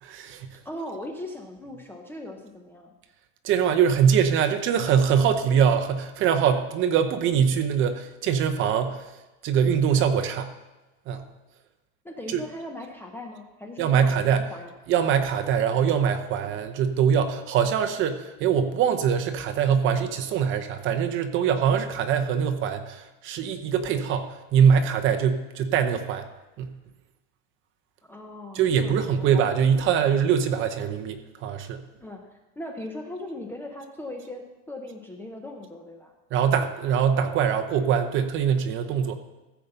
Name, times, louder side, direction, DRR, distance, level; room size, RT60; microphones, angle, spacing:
voice 1, 0.0-0.6 3.4-9.1 9.4-10.5 11.1-11.3 12.3-12.4 13.8-14.5 14.9-26.3 26.6-26.8 28.5-31.8 36.3-39.2, right 7 dB, 35° right, 7 dB, 0.8 m, -23 dB
voice 2, 0.6-2.9 12.0-14.7 28.0-29.3 32.0-36.1, left 1 dB, 5° left, 2 dB, 0.6 m, -39 dB
14.5 x 5.2 x 6.9 m, 1.1 s
cardioid pair, 165°, 36 cm